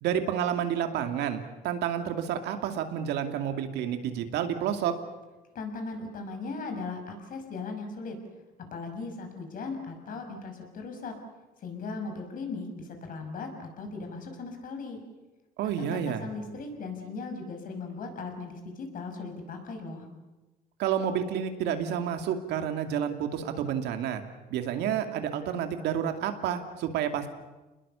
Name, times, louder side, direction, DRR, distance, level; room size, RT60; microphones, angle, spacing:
voice 1, 0.0-4.9 15.6-16.3 20.8-24.2 24.5-27.3, right 9 dB, 80° right, 7 dB, 2.5 m, -30 dB
voice 2, 5.5-8.2 8.7-11.1 11.6-15.0 15.8-20.1, left 4 dB, 55° left, 5 dB, 5.8 m, -38 dB
28.5 x 20.5 x 7.0 m, 1.1 s
cardioid pair, 110°, 17 cm